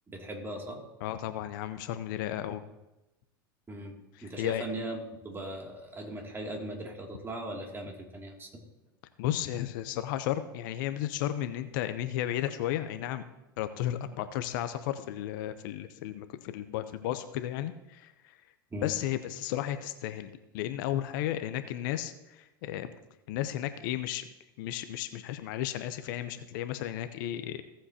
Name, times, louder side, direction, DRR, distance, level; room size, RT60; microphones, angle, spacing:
voice 1, 0.1-0.8 3.7-5.0 5.2-8.6 18.7-18.9, right 1 dB, 20° right, 1 dB, 2.5 m, -39 dB
voice 2, 1.0-2.6 4.1-4.6 9.2-13.2 13.6-18.4 18.8-22.9 23.3-24.2 24.6-27.6, left 12 dB, 65° left, 11 dB, 0.7 m, -34 dB
16.5 x 7.7 x 2.8 m, 0.96 s
hypercardioid pair, 95°, 12 cm